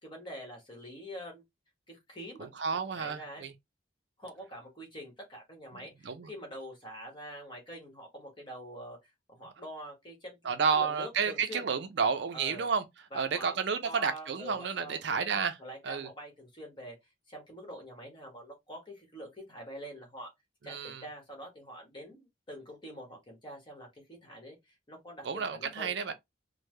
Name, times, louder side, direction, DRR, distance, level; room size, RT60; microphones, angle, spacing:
voice 1, 0.0-1.4 1.9-2.5 2.9-3.4 4.2-11.7 12.3-12.7 13.1-13.6 13.8-17.0 17.3-20.3 20.6-26.1, equal, 25° left, 1.1 m, -45 dB
voice 2, 2.4-3.5 6.0-6.3 10.4-12.8 13.1-15.6 15.8-16.1 20.6-21.0 25.2-26.1, right 6 dB, 60° right, 0.4 m, -31 dB
3.3 x 2.1 x 3.2 m
head